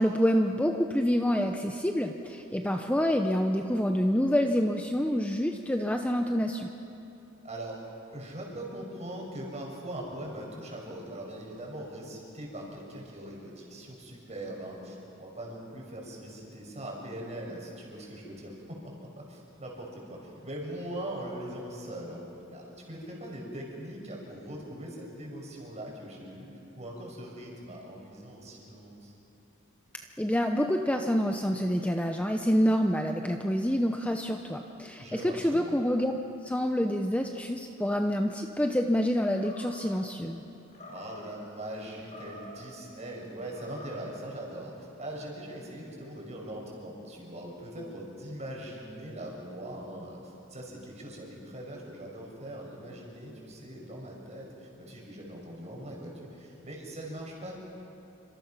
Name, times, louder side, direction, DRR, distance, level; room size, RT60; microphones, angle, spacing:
voice 1, 0.0-6.7 30.2-36.1 36.4-40.4, equal, 5° left, 4 dB, 0.8 m, -27 dB
voice 2, 7.4-7.8 8.1-18.8 19.2-26.5 26.8-29.1 35.0-35.7 40.9-57.5, right 1 dB, 35° right, -1 dB, 6.0 m, -41 dB
Animal, 39.3-40.0 40.7-41.4 42.0-42.7 43.4-44.1, left 1 dB, 35° left, 4.1 m, -47 dB
28.5 x 25.5 x 5.9 m, 2.9 s
head